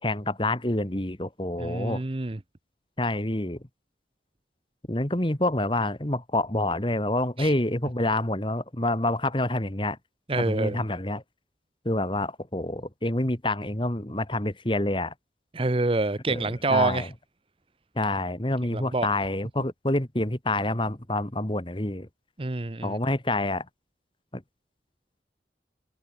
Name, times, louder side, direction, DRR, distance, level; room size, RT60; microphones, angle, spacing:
voice 1, 0.0-2.0 3.0-3.6 4.9-10.0 10.4-11.2 11.8-15.1 16.3-17.1 18.0-22.1 22.8-23.7 24.3-24.4, left 1 dB, 30° left, 2.1 m, -27 dB
voice 2, 1.6-2.4 7.4-7.5 10.3-10.8 15.5-17.1 18.7-19.1 22.4-23.0, right 2 dB, 30° right, 0.8 m, -27 dB
head